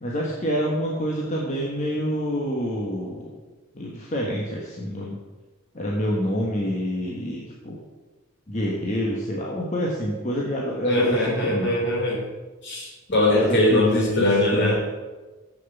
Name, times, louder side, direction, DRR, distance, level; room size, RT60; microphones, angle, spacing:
voice 1, 0.0-3.3 3.7-5.2 5.7-7.8 8.5-11.8 13.3-14.2 14.5-14.9, equal, 35° left, -2 dB, 1.3 m, -27 dB
voice 2, 10.9-12.2 12.6-14.7, left 1 dB, 55° left, -3 dB, 3.6 m, -22 dB
7.7 x 6.8 x 7.1 m, 1.2 s
head